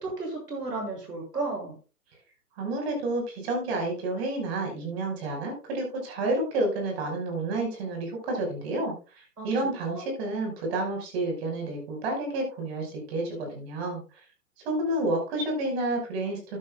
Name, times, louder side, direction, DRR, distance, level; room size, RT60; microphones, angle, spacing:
voice 1, 0.0-1.8 9.4-10.0, right 3 dB, 80° right, 2 dB, 7.2 m, -34 dB
voice 2, 2.6-14.0 14.6-16.6, right 2 dB, 40° right, 2 dB, 5.6 m, -30 dB
13.0 x 11.5 x 2.4 m, 0.34 s
figure-of-eight pair, 130°, 47 cm